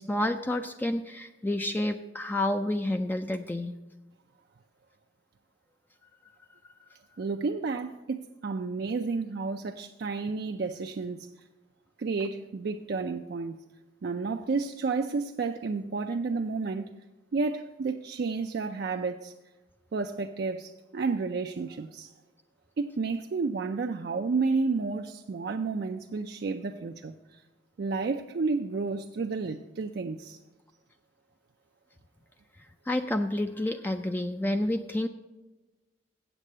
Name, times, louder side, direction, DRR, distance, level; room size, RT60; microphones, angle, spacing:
voice 1, 0.0-3.7 32.9-35.1, left 1 dB, 10° left, 0.3 m, -29 dB
voice 2, 7.2-11.3 12.0-13.6 14.0-17.0 17.3-19.3 19.9-22.1 22.8-27.4 27.8-30.4, right 4 dB, 60° right, 0.4 m, -31 dB
8.1 x 7.6 x 7.3 m
head